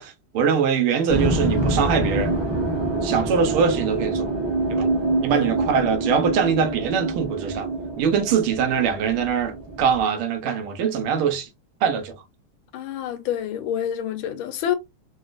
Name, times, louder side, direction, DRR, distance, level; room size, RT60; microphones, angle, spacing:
voice 1, 0.0-2.3 3.0-4.3 4.7-4.9 5.2-7.7 8.0-11.5 11.8-12.2, right 6 dB, 90° right, 1.6 m, -22 dB
sound 1, 1.1-10.0, right 2 dB, 25° right, 0.5 m, -26 dB
voice 2, 12.7-14.8, left 10 dB, 75° left, 1.4 m, -27 dB
4.0 x 2.2 x 2.4 m
omnidirectional pair, 2.3 m